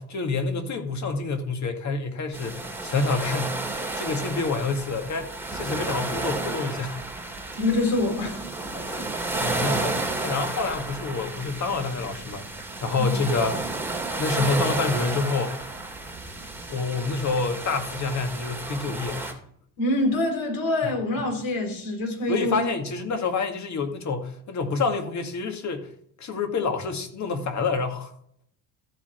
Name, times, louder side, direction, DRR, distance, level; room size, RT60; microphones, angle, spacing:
voice 1, 0.0-6.9 8.9-9.0 9.4-12.4 12.8-13.7 14.2-15.5 16.7-19.3 22.3-25.9 26.2-28.1, left 4 dB, 50° left, 5 dB, 2.1 m, -27 dB
sound 1, 2.3-19.3, right 2 dB, 5° right, 2.7 m, -32 dB
voice 2, 7.6-8.5 8.7-9.1 13.0-13.2 19.8-22.6, left 2 dB, 65° left, 2 dB, 4.8 m, -26 dB
14.0 x 5.1 x 4.5 m, 0.65 s
cardioid pair, 85°, 36 cm